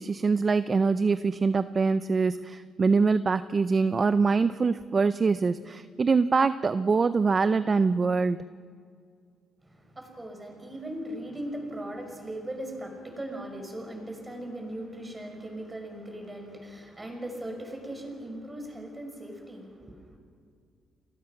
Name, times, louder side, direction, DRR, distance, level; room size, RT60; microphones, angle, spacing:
voice 1, 0.0-8.4, right 4 dB, 35° right, 13 dB, 0.6 m, -24 dB
voice 2, 9.6-20.2, right 1 dB, 15° right, 3 dB, 5.6 m, -39 dB
29.5 x 20.5 x 6.0 m, 2.2 s
cardioid pair, 90°, 0 cm